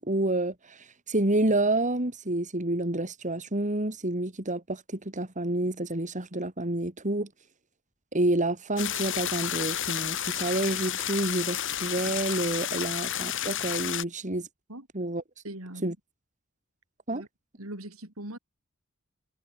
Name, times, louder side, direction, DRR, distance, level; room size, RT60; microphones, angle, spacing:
voice 1, 0.0-7.3 8.1-14.5 14.9-15.2 15.8-15.9 17.1-17.2, right 1 dB, 35° right, 3.7 m, -29 dB
sound 1, 8.8-14.0, left 11 dB, 65° left, 6.9 m, -31 dB
voice 2, 15.4-16.0 17.1-17.3 17.6-18.4, right 1 dB, 80° right, 7.0 m, -40 dB
head